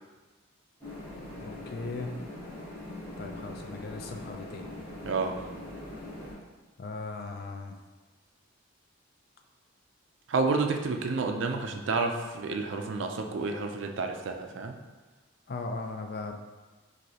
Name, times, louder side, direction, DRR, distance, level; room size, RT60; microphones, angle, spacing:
sound 1, 0.8-6.3, left 1 dB, 15° left, 1.3 m, -42 dB
voice 1, 1.4-2.1 3.2-4.6 6.8-7.8 15.5-16.4, left 3 dB, 50° left, 4 dB, 0.4 m, -38 dB
voice 2, 5.0-5.4 10.3-14.8, right 4 dB, 60° right, 4 dB, 0.4 m, -30 dB
6.1 x 2.6 x 2.8 m, 1.2 s
head